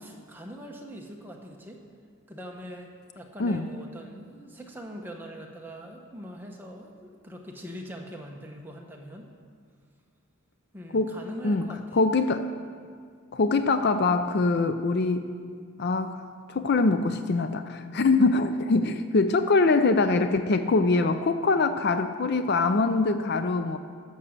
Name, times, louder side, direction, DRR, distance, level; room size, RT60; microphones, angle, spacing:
voice 1, 0.0-1.8 2.3-2.9 3.1-9.3 10.7-12.0, equal, 10° right, 0 dB, 0.9 m, -42 dB
voice 2, 11.9-12.5 13.3-15.3 15.8-16.2 16.5-23.8, left 3 dB, 45° left, 10 dB, 0.4 m, -23 dB
12.0 x 6.3 x 7.2 m, 2.1 s
head